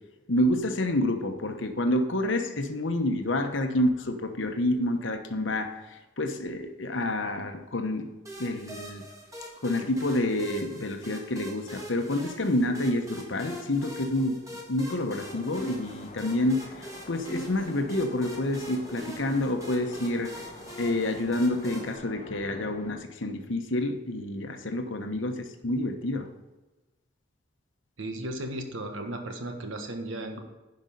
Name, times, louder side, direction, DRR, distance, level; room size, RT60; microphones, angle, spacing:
voice 1, 0.3-8.1 8.4-9.0 9.6-14.4 14.7-20.3 20.8-26.3, left 1 dB, 65° left, 6 dB, 1.0 m, -28 dB
sound 1, 8.3-22.0, right 1 dB, 15° right, 1.7 m, -43 dB
sound 2, 15.2-23.0, left 2 dB, 30° left, 1.0 m, -47 dB
voice 2, 28.0-30.4, right 1 dB, 70° right, 4 dB, 1.4 m, -35 dB
10.5 x 5.3 x 5.4 m, 1.1 s
head